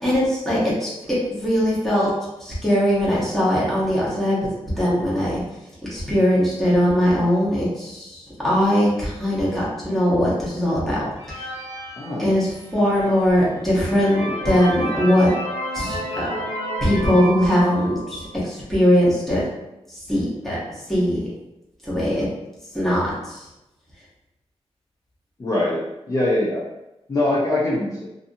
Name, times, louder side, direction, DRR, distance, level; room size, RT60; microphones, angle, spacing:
voice 1, 0.0-2.1 2.4-4.4 4.8-5.4 5.9-11.4 12.2-15.3 15.7-16.3 16.8-19.4 19.9-20.6 20.9-21.2 21.8-22.3 22.7-23.4, equal, 5° left, -8 dB, 0.9 m, -20 dB
sound 1, 11.2-12.8 13.4-13.5 13.8-18.4, right 1 dB, 80° left, 0.7 m, -31 dB
voice 2, 25.4-26.6 27.1-28.1, left 1 dB, 30° left, -7 dB, 0.5 m, -23 dB
2.7 x 2.5 x 2.5 m, 0.92 s
wide cardioid pair, 155°, 11 cm